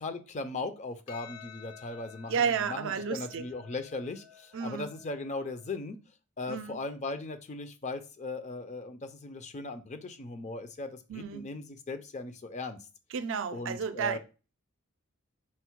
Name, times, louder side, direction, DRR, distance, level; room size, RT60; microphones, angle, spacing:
voice 1, 0.0-6.0 6.4-12.8 13.5-14.2, left 3 dB, 30° left, 0.4 m, -38 dB
Percussion, 1.1-5.7, left 8 dB, 80° left, 0.6 m, -52 dB
voice 2, 2.3-3.4 4.5-4.9 6.5-6.8 11.1-11.5 13.1-14.2, right 6 dB, 60° right, 0.4 m, -32 dB
4.3 x 2.1 x 4.4 m
head